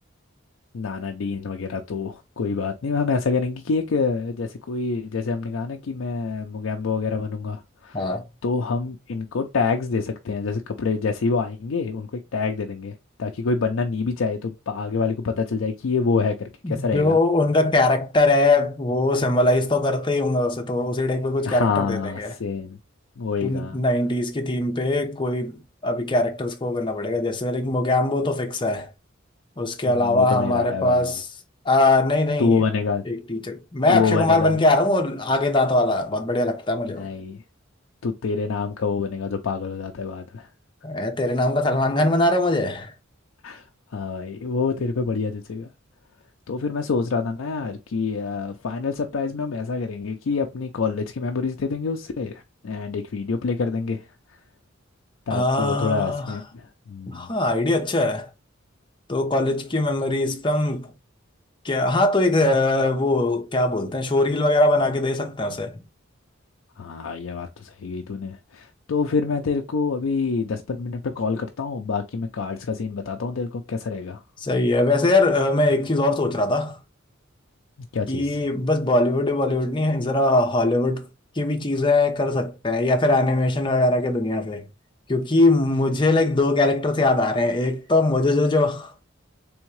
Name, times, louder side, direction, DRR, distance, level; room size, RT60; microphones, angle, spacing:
voice 1, 0.7-8.1 8.4-17.2 21.4-22.8 23.2-23.8 29.9-31.2 32.4-33.1 33.9-34.6 36.9-37.4 38.0-40.5 43.4-43.7 43.9-45.7 46.5-54.0 55.3-57.3 66.8-74.2 77.9-78.4, left 4 dB, 80° left, 0.5 m, -27 dB
voice 2, 16.6-22.3 23.4-28.9 29.6-31.3 31.6-32.6 33.1-37.1 40.8-42.9 55.3-56.4 57.1-58.3 59.1-60.9 61.6-65.8 74.4-76.8 78.1-81.0 81.4-84.7 85.1-88.9, left 2 dB, 25° left, 0.7 m, -21 dB
3.5 x 3.4 x 3.1 m
head